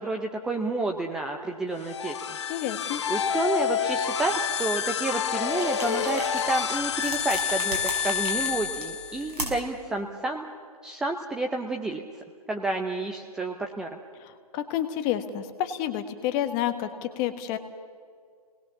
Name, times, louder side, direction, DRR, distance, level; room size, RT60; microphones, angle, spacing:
voice 1, 0.0-2.4 3.1-10.5 10.8-12.0 12.5-13.9, right 2 dB, 5° right, 3 dB, 0.6 m, -30 dB
sound 1, 1.8-9.4, left 8 dB, 45° left, 1.0 m, -29 dB
voice 2, 2.5-3.0 14.2-17.6, left 11 dB, 20° left, 9 dB, 1.4 m, -29 dB
sound 2, 5.5-9.8, right 1 dB, 80° right, 6.5 m, -37 dB
30.0 x 20.0 x 7.1 m, 2.1 s
figure-of-eight pair, 145°, 20 cm